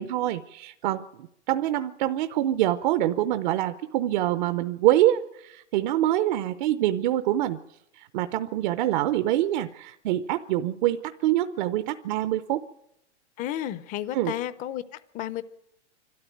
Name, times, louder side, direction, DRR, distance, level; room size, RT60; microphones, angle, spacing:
voice 1, 0.0-7.6 8.0-12.6 14.1-14.3, right 13 dB, 45° right, 11 dB, 0.7 m, -25 dB
voice 2, 13.4-14.8 15.1-15.4, left 12 dB, 25° left, 17 dB, 0.7 m, -32 dB
25.5 x 13.0 x 9.2 m, 0.84 s
hypercardioid pair, 145°, 34 cm